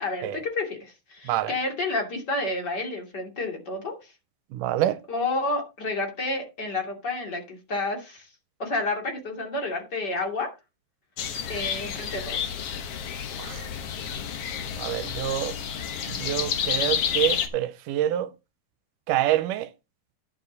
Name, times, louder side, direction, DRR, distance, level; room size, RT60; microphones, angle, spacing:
voice 1, 0.0-4.1 5.1-8.3 8.6-10.5 11.5-12.5, left 2 dB, 35° left, 2.9 m, -30 dB
voice 2, 4.5-5.0 13.4-13.6 14.8-15.5 16.1-18.3 19.1-19.7, right 13 dB, 85° right, 2.2 m, -26 dB
sound 1, 11.2-17.5, left 8 dB, 55° left, 1.9 m, -30 dB
10.5 x 7.6 x 4.0 m
omnidirectional pair, 3.7 m